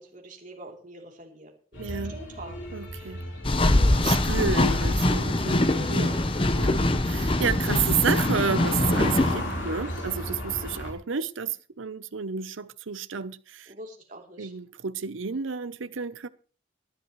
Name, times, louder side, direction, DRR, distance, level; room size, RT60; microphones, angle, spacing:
voice 1, 0.0-2.7 3.8-4.0 5.8-6.3 13.7-14.5, right 1 dB, 40° right, 3.3 m, -44 dB
sound 1, 1.7-10.9, left 1 dB, 65° left, 4.1 m, -35 dB
voice 2, 1.8-2.2 2.7-3.2 4.0-6.1 6.6-13.7 14.4-16.3, right 6 dB, 80° right, 0.7 m, -31 dB
sound 2, 3.4-9.4, left 1 dB, 25° left, 0.8 m, -23 dB
21.0 x 10.5 x 3.2 m
head